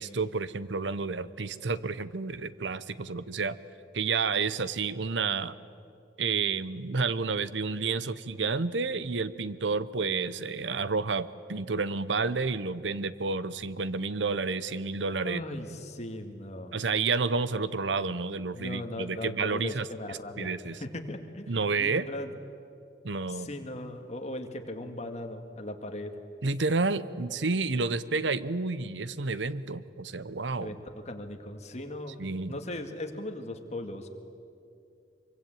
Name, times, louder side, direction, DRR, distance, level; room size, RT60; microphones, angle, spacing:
voice 1, 0.0-3.6 3.9-5.5 6.2-15.4 16.7-20.8 21.5-22.1 23.0-23.5 26.4-30.8 32.2-32.6, right 4 dB, 90° right, 16 dB, 0.9 m, -30 dB
voice 2, 15.2-16.8 18.5-22.3 23.3-26.1 30.6-30.8 31.1-32.2 32.5-34.1, left 1 dB, 40° left, 5 dB, 2.1 m, -38 dB
25.0 x 23.5 x 9.0 m, 2.5 s
head